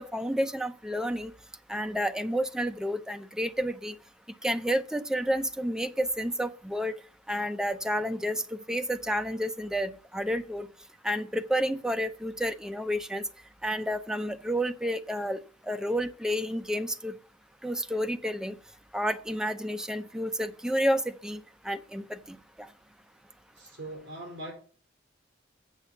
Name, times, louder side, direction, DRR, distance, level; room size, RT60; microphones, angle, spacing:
voice 1, 0.0-1.3 1.7-3.9 4.4-6.9 7.3-10.7 11.0-13.2 13.6-15.4 15.7-17.1 17.6-18.5 18.9-22.7, equal, 5° right, 0.5 m, -30 dB
voice 2, 23.6-24.5, right 1 dB, 70° right, 4.6 m, -41 dB
8.2 x 6.9 x 7.0 m
head